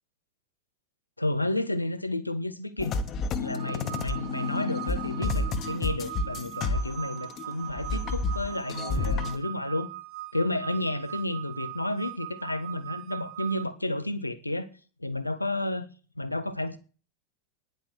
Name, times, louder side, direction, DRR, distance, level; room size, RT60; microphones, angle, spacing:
voice 1, 1.2-3.0 3.4-9.9 10.3-14.7 15.0-15.9 16.2-16.8, left 1 dB, 85° left, 1.3 m, -31 dB
sound 1, 2.8-7.4 7.7-9.4, left 3 dB, 30° left, 1.6 m, -30 dB
sound 2, 3.6-13.6, right 17 dB, 45° right, 0.9 m, -40 dB
10.5 x 10.5 x 6.6 m
figure-of-eight pair, 90°, 0 cm